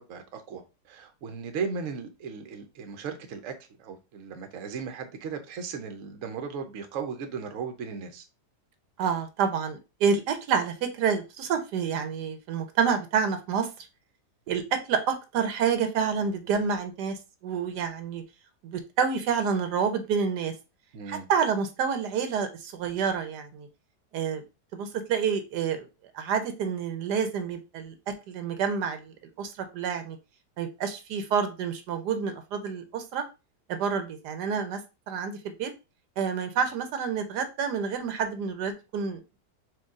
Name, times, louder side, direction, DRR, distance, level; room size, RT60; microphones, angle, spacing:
voice 1, 0.0-8.2 20.9-21.3, right 5 dB, 60° right, 1.0 m, -36 dB
voice 2, 9.0-13.7 14.5-18.2 18.6-20.5 21.1-23.7 24.1-24.4 24.7-25.9 26.1-27.9 28.3-30.2 30.6-33.2 33.7-34.8 35.1-35.7 36.2-39.4, right 6 dB, 80° right, 1.3 m, -28 dB
4.5 x 2.6 x 3.6 m
omnidirectional pair, 1.7 m